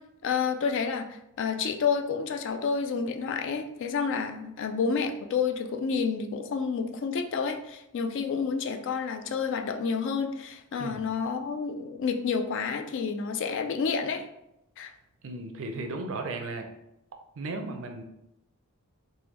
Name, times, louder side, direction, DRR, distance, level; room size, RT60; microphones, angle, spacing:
voice 1, 0.2-14.3 14.8-14.9, left 5 dB, 55° left, 5 dB, 0.3 m, -29 dB
voice 2, 15.2-16.6 17.4-18.0, right 2 dB, 60° right, 5 dB, 0.4 m, -35 dB
3.4 x 2.2 x 3.0 m, 0.84 s
head